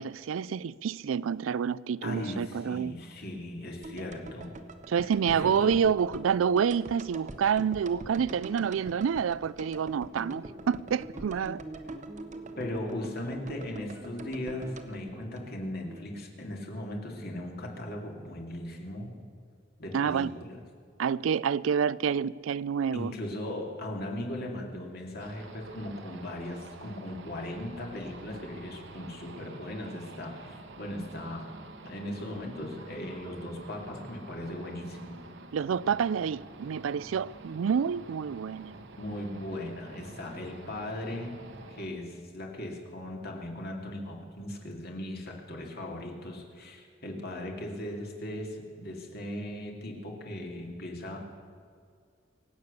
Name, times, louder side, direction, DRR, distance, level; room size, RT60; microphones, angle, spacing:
voice 1, 0.0-2.9 4.9-11.6 19.9-20.3 21.0-23.1 35.5-38.7, right 7 dB, 85° right, 0.4 m, -28 dB
voice 2, 2.0-4.5 4.9-5.8 12.6-19.2 19.8-20.6 22.9-31.5 31.8-35.1 39.0-41.4 41.7-51.2, left 1 dB, 55° left, 2.5 m, -38 dB
sound 1, 3.8-16.0 16.3-16.4, right 2 dB, 40° right, 0.9 m, -45 dB
sound 2, 10.1-16.0, right 1 dB, 15° right, 0.7 m, -47 dB
sound 3, 25.2-41.9, right 2 dB, 65° right, 1.1 m, -48 dB
24.0 x 8.3 x 6.7 m
head